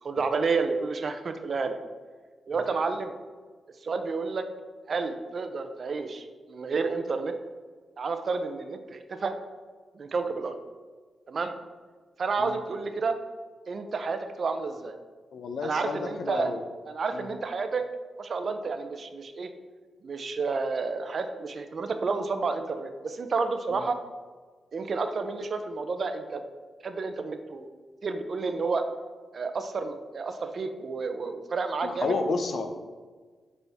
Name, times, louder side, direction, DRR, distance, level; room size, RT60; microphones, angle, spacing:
voice 1, 0.0-1.8 2.5-3.1 3.8-4.4 4.9-7.3 8.0-9.3 10.0-10.6 11.3-11.5 12.2-13.2 13.7-14.9 15.6-16.5 16.9-17.8 18.2-19.5 20.0-24.0 24.7-26.4 26.8-27.7 28.0-28.9 29.3-32.2, right 4 dB, 60° right, 8 dB, 0.6 m, -30 dB
voice 2, 15.3-16.6 17.1-17.4 23.7-23.8 31.8-32.9, left 4 dB, 70° left, 7 dB, 0.6 m, -31 dB
6.8 x 4.3 x 3.5 m, 1.4 s
cardioid pair, 65°, 0 cm